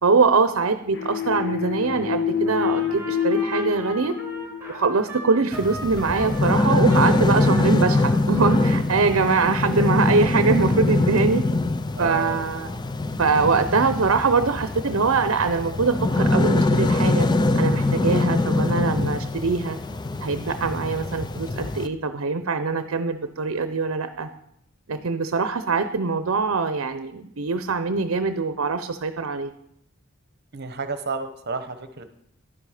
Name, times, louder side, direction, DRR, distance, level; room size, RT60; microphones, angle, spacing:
voice 1, 0.0-4.1 4.7-11.4 12.0-12.8 13.2-17.3 17.6-19.8 20.2-24.3 24.9-29.5, right 4 dB, 70° right, 10 dB, 0.7 m, -23 dB
sound 1, 0.9-5.5, left 8 dB, 55° left, 0.9 m, -27 dB
Trumpet, 2.4-8.7 9.0-9.7, right 1 dB, 10° right, 2.7 m, -38 dB
sound 2, 5.5-21.9, left 2 dB, 20° left, 0.5 m, -23 dB
voice 2, 7.3-7.7 11.9-12.4 30.5-32.1, right 3 dB, 50° right, 9 dB, 1.0 m, -31 dB
11.0 x 10.5 x 4.9 m, 0.74 s
head